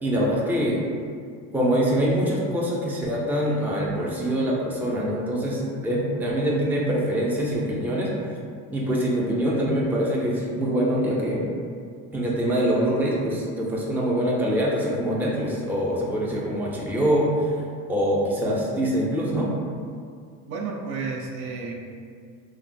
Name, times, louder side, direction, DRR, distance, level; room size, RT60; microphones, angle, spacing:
voice 1, 0.0-0.8 1.5-8.1 8.7-11.5 12.1-17.6 17.9-19.5, equal, 5° right, -4 dB, 0.4 m, -24 dB
voice 2, 20.5-21.8, right 4 dB, 70° right, 0 dB, 0.6 m, -31 dB
3.0 x 2.2 x 2.6 m, 2.2 s
supercardioid pair, 80°, 40 cm